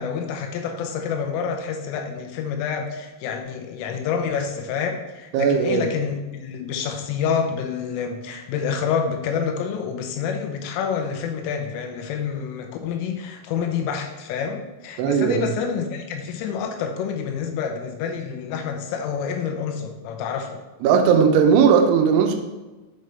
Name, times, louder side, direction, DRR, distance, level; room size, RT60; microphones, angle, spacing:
voice 1, 0.0-20.6, left 6 dB, 85° left, 4 dB, 3.4 m, -28 dB
voice 2, 5.3-5.9 15.0-15.4 20.8-22.4, right 6 dB, 80° right, 5 dB, 2.9 m, -17 dB
8.0 x 5.1 x 3.2 m, 1.1 s
omnidirectional pair, 5.7 m